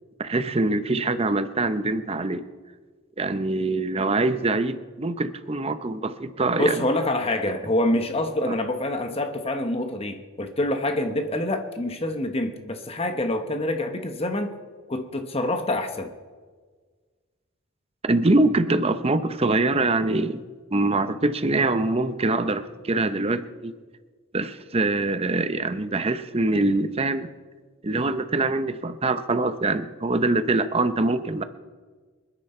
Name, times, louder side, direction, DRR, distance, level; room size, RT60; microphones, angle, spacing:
voice 1, 0.2-2.4 3.2-6.8 18.0-20.4 20.7-23.7 24.3-27.3 27.8-31.4, right 2 dB, 30° right, 11 dB, 0.7 m, -24 dB
voice 2, 6.6-14.5 14.9-16.1, left 1 dB, 30° left, 6 dB, 1.1 m, -26 dB
26.5 x 10.0 x 4.4 m, 1.5 s
head